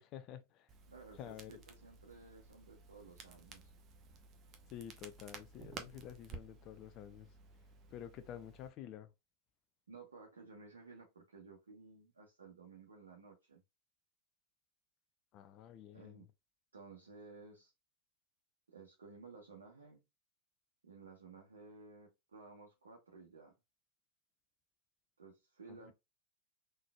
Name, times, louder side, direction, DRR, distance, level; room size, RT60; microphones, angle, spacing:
voice 1, 0.0-0.7 1.2-1.5 4.7-7.3 7.9-9.1 15.3-16.3 25.7-25.9, left 10 dB, 35° left, 0.4 m, -50 dB
Crackle, 0.7-8.7, right 5 dB, 30° right, 0.8 m, -54 dB
voice 2, 0.9-3.7 9.9-13.6 15.9-16.3 16.7-17.7 18.7-20.0 20.8-23.5 25.2-25.9, right 4 dB, 70° right, 1.0 m, -56 dB
3.9 x 3.2 x 2.2 m
figure-of-eight pair, 90°, 0 cm